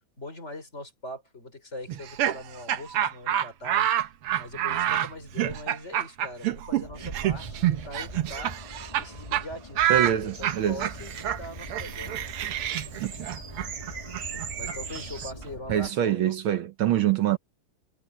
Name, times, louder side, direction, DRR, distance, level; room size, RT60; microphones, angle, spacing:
voice 1, 0.2-3.9 4.4-8.5 9.0-12.3 14.6-16.4, left 1 dB, 30° left, 5.2 m, -41 dB
Laughter, 1.9-9.1 9.3-9.4 9.8-15.5, right 11 dB, 90° right, 2.0 m, -28 dB
sound 1, 6.8-15.9, left 1 dB, 15° left, 2.8 m, -44 dB
voice 2, 9.9-10.9 13.0-13.4 15.7-17.4, right 11 dB, 70° right, 1.7 m, -25 dB
sound 2, 10.3-15.3, right 6 dB, 50° right, 2.3 m, -41 dB
omnidirectional pair, 2.4 m